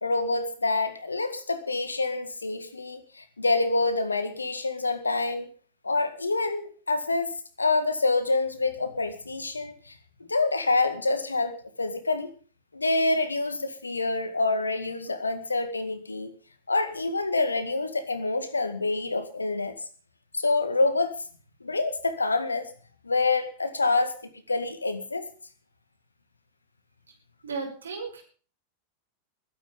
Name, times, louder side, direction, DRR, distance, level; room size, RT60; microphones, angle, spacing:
voice 1, 0.0-5.5 5.8-7.3 7.6-10.0 10.3-12.3 12.7-16.3 16.7-19.7 20.3-21.2 21.6-22.7 23.0-24.1 24.5-25.2, left 3 dB, 80° left, 12 dB, 1.9 m, -27 dB
voice 2, 27.4-28.2, right 4 dB, 70° right, 3 dB, 6.0 m, -34 dB
21.0 x 9.9 x 5.2 m, 0.41 s
figure-of-eight pair, 90°, 0 cm